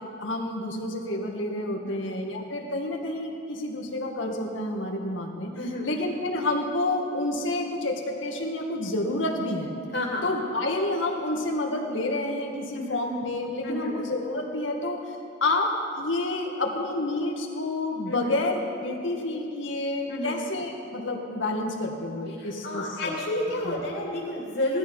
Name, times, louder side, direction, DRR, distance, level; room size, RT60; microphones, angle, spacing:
voice 1, 0.0-5.5 5.8-9.7 10.2-15.2 15.4-23.1 23.6-23.8, left 2 dB, 90° left, 1 dB, 1.9 m, -29 dB
voice 2, 5.6-5.9 9.9-10.3 12.7-13.0 13.6-14.0 18.1-18.4 20.1-20.4 22.4-24.8, left 1 dB, 70° left, -3 dB, 2.6 m, -30 dB
17.5 x 13.0 x 5.5 m, 2.5 s
head